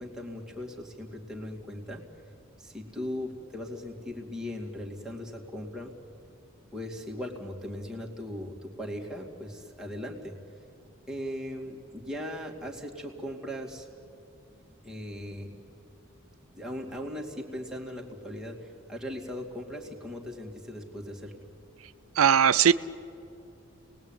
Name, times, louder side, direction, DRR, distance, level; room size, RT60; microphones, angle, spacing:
voice 1, 0.0-2.0 2.6-6.0 6.7-10.4 11.1-13.9 14.8-15.6 16.6-21.5, left 1 dB, 5° right, -2 dB, 2.5 m, -38 dB
voice 2, 22.1-22.7, right 8 dB, 85° right, 14 dB, 0.5 m, -19 dB
29.0 x 20.0 x 9.1 m, 2.5 s
head